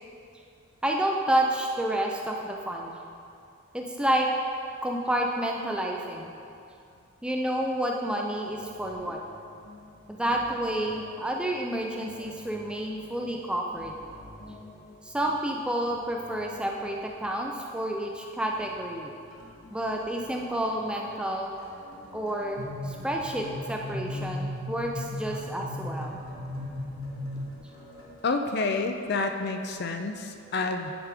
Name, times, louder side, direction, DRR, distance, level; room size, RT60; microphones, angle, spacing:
voice 1, 0.8-2.9 3.7-4.3 4.8-6.3 7.2-9.2 10.1-13.9 15.0-19.2 19.7-21.5 22.1-26.2, right 1 dB, 5° right, 0 dB, 0.5 m, -29 dB
sound 1, 8.4-28.2, left 2 dB, 75° left, 1.6 m, -50 dB
sound 2, 22.6-27.6, left 1 dB, 65° right, 1.0 m, -36 dB
voice 2, 28.2-30.9, left 3 dB, 50° left, 5 dB, 0.4 m, -29 dB
10.0 x 5.1 x 4.8 m, 2.5 s
head